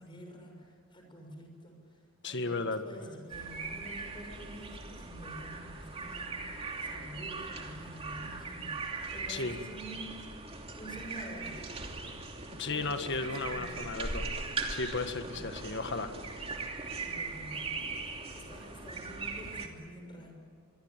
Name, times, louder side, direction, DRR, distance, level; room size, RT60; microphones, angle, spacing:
voice 1, 0.0-11.7 12.4-13.9 15.1-15.5 17.0-20.3, right 1 dB, 25° left, 3 dB, 6.5 m, -48 dB
voice 2, 2.2-2.8 9.3-9.6 12.6-16.1, left 3 dB, 55° left, 8 dB, 1.8 m, -35 dB
sound 1, 3.3-19.7, right 3 dB, 25° right, 2.9 m, -40 dB
25.5 x 23.5 x 9.2 m, 2.1 s
head